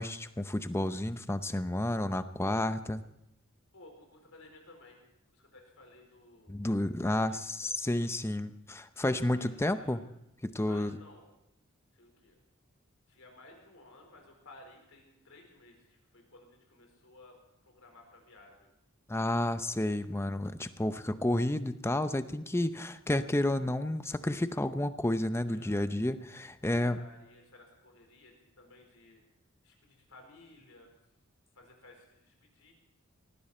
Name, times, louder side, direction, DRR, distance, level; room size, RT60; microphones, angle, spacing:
voice 1, 0.0-3.0 6.5-10.0 10.4-10.9 19.1-27.0, left 1 dB, 10° left, 11 dB, 0.6 m, -31 dB
voice 2, 3.7-5.0 5.3-6.7 7.0-7.7 9.1-10.0 10.7-11.4 11.9-12.4 13.1-18.7 25.5-25.8 26.7-29.2 29.6-30.9 31.5-32.7, left 2 dB, 70° left, 2 dB, 4.5 m, -56 dB
19.0 x 15.5 x 4.3 m, 0.83 s
head